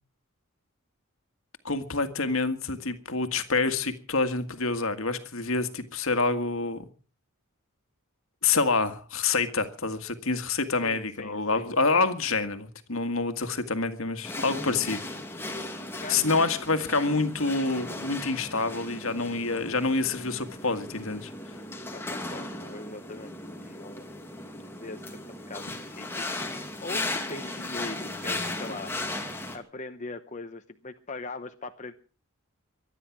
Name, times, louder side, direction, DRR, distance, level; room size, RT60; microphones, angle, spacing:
voice 1, 1.6-6.9 8.4-15.0 16.1-21.3, left 3 dB, 65° left, 1.9 m, -27 dB
voice 2, 10.8-11.7 16.0-16.2 21.9-24.1 24.8-26.4 26.8-28.9 29.5-31.9, left 3 dB, 35° left, 0.9 m, -41 dB
sound 1, 14.2-29.6, left 2 dB, 10° left, 2.4 m, -36 dB
23.5 x 10.0 x 6.1 m
head